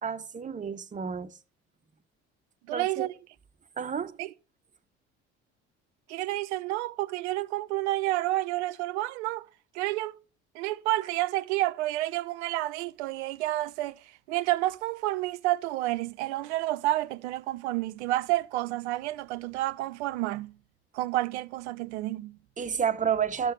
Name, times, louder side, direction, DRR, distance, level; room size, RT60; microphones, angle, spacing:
voice 1, 0.0-1.4 2.7-3.1 3.8-4.2 22.6-23.5, right 7 dB, 20° right, 0.7 m, -30 dB
voice 2, 2.7-3.1 4.2-4.3 6.1-9.5 9.7-10.2 10.5-14.0 14.3-20.5 20.9-22.4, right 16 dB, 75° right, 0.6 m, -30 dB
12.0 x 6.5 x 3.1 m
hypercardioid pair, 55°, 35 cm